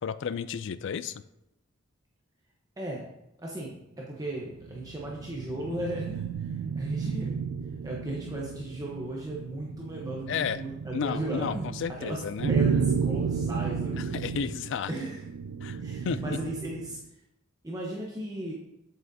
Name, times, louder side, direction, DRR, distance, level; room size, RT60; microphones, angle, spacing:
voice 1, 0.0-1.2 10.3-10.6 10.9-12.5 14.0-14.9 15.6-15.8 16.0-16.4, left 7 dB, 60° left, 15 dB, 0.3 m, -32 dB
voice 2, 3.4-7.4 7.8-11.6 12.0-12.2 12.5-14.1 14.9-15.2 15.7-17.0 17.6-18.5, right 1 dB, 15° right, -3 dB, 0.9 m, -36 dB
sound 1, 4.3-17.0, right 6 dB, 75° right, 0.4 m, -32 dB
7.9 x 7.8 x 2.7 m, 0.87 s
head